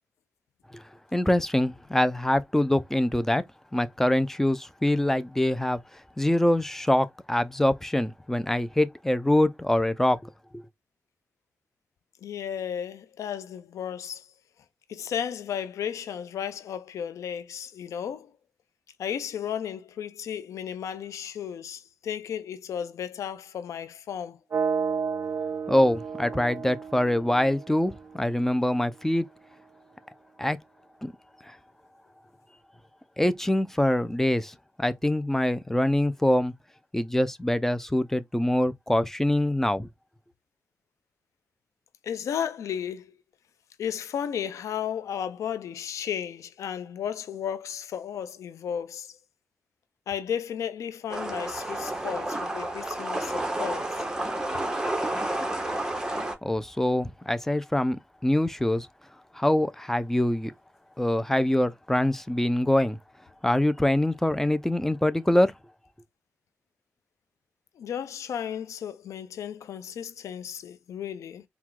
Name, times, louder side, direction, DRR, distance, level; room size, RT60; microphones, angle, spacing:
voice 1, 1.1-3.4 3.7-5.8 6.2-10.3 25.7-29.3 30.4-30.6 31.0-31.1 31.5-31.6 33.2-36.5 36.9-39.9 56.4-58.9 59.3-60.5 61.0-63.0 63.4-65.5, left 1 dB, 5° left, 0.6 m, -24 dB
voice 2, 12.2-14.2 14.9-18.3 19.0-24.4 42.0-43.1 43.8-49.2 50.1-54.0 67.8-71.4, left 8 dB, 90° left, 0.4 m, -34 dB
sound 1, 24.5-28.5, right 6 dB, 50° right, 0.4 m, -32 dB
sound 2, 51.1-56.3, right 1 dB, 15° right, 1.3 m, -30 dB
4.4 x 2.4 x 3.8 m
cardioid pair, 65°, 5 cm